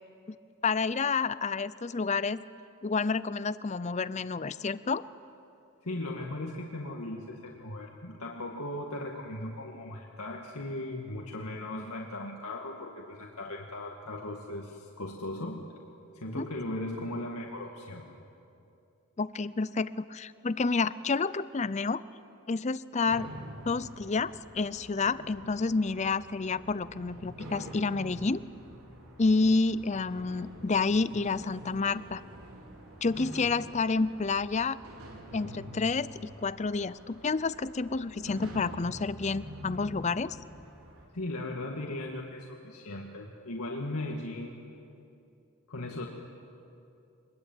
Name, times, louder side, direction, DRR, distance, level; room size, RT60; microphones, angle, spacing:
voice 1, 0.6-2.4 2.8-5.1 16.4-16.5 19.2-22.0 22.5-23.3 23.7-28.4 29.2-32.2 33.0-34.8 35.3-40.4, left 4 dB, 30° left, 16 dB, 0.5 m, -29 dB
voice 2, 5.8-15.7 16.1-18.0 41.1-44.5 45.7-46.1, left 1 dB, 85° left, -1 dB, 2.1 m, -37 dB
sound 1, 23.1-41.0, equal, 80° right, 4.6 m, -47 dB
24.5 x 22.0 x 9.1 m, 2.6 s
head